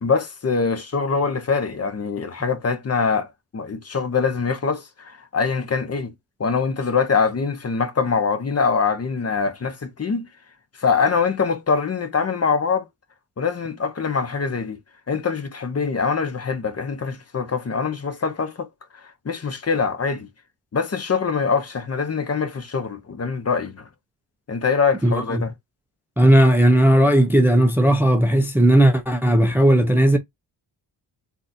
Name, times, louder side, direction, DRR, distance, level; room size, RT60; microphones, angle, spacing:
voice 1, 0.0-3.3 3.5-6.1 6.4-10.3 10.8-12.9 13.4-14.8 15.1-18.7 19.0-20.3 20.7-23.9 24.5-25.5, left 5 dB, 35° left, 0.8 m, -23 dB
voice 2, 25.0-25.5 26.2-30.2, right 1 dB, 5° right, 0.5 m, -16 dB
3.8 x 2.7 x 2.6 m
cardioid pair, 80°, 45 cm